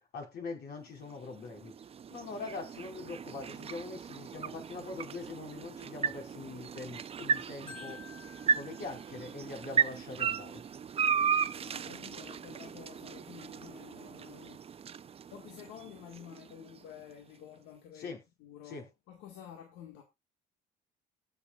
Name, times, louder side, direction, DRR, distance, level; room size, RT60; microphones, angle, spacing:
voice 1, 0.1-1.7 2.1-8.0 8.5-10.6 17.9-18.2 18.6-18.8, left 4 dB, 60° left, 4.8 m, -43 dB
sound 1, 0.9-17.1, right 7 dB, 35° right, 0.6 m, -36 dB
Marimba xylophone, 7.7-9.7, left 6 dB, 30° left, 3.9 m, -52 dB
voice 2, 11.6-14.7 15.3-18.1 18.4-20.0, left 9 dB, 80° left, 1.8 m, -50 dB
19.5 x 7.0 x 2.4 m
supercardioid pair, 85°, 18 cm